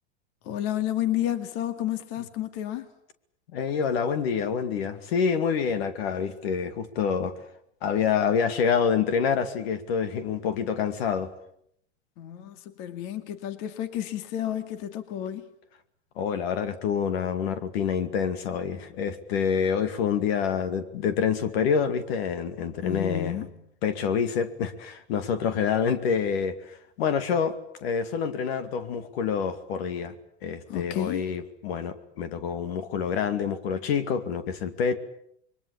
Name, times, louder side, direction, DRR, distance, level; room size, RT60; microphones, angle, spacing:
voice 1, 0.4-2.9 12.2-15.5 22.8-23.5 30.7-31.3, left 11 dB, 45° left, 2.4 m, -31 dB
voice 2, 3.5-7.3 7.8-11.3 16.2-23.4 23.8-30.1 30.4-35.0, left 7 dB, 65° left, 2.4 m, -27 dB
27.5 x 23.0 x 8.5 m
supercardioid pair, 145°, 33 cm